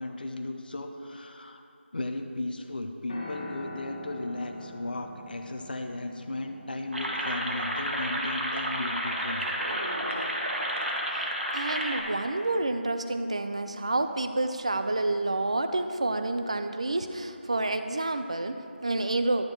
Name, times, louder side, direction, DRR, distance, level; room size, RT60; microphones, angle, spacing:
voice 1, 0.0-1.6 1.9-9.5, left 2 dB, 50° left, 5 dB, 0.6 m, -35 dB
Piano, 3.1-11.4, left 2 dB, 25° left, 1.3 m, -47 dB
sound 1, 6.9-12.0, equal, 80° right, 1.7 m, -31 dB
voice 2, 11.5-19.5, right 2 dB, 30° right, 8 dB, 0.3 m, -29 dB
11.5 x 4.4 x 4.6 m, 2.5 s
figure-of-eight pair, 175°, 6 cm